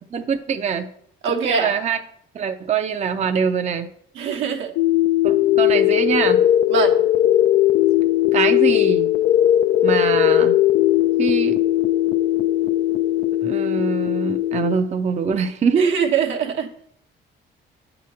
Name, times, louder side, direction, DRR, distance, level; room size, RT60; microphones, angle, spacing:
voice 1, 0.1-0.9 1.4-2.0 2.3-3.9 5.2-6.4 8.3-9.1 9.8-10.6 11.2-11.6 13.4-16.0, right 6 dB, 35° right, 7 dB, 0.5 m, -23 dB
voice 2, 1.2-1.7 4.1-4.7 6.7-7.0 15.8-16.7, right 6 dB, 85° right, 1 dB, 1.0 m, -22 dB
sound 1, 4.8-14.8, left 13 dB, 85° left, 0.4 m, -18 dB
8.3 x 3.0 x 6.2 m, 0.67 s
cardioid pair, 90°, 20 cm